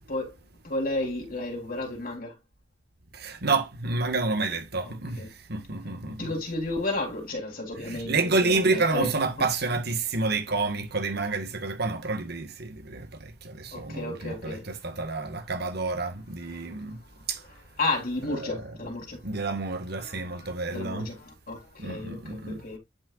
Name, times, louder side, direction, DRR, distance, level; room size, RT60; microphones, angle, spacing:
voice 1, 0.6-2.4 4.8-5.3 6.1-9.4 13.7-14.7 16.5-16.7 17.8-19.2 19.9-22.8, left 2 dB, 50° left, 3.7 m, -33 dB
voice 2, 3.1-6.3 7.8-14.6 14.8-17.0 17.3-17.4 18.3-18.6 19.2-21.1 21.8-22.6, right 3 dB, 60° right, 1.7 m, -29 dB
10.0 x 5.7 x 2.5 m
head